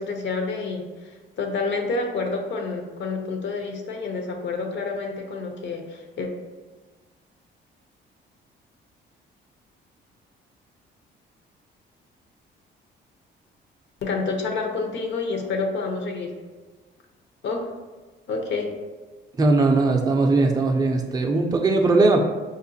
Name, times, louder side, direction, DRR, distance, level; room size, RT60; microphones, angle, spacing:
voice 1, 0.0-6.3 14.0-16.4 17.4-17.7 18.3-18.7, left 3 dB, 65° left, 3 dB, 0.6 m, -28 dB
voice 2, 19.4-22.2, right 3 dB, 20° right, 2 dB, 0.4 m, -19 dB
4.9 x 2.1 x 2.7 m, 1.3 s
cardioid pair, 90°, 20 cm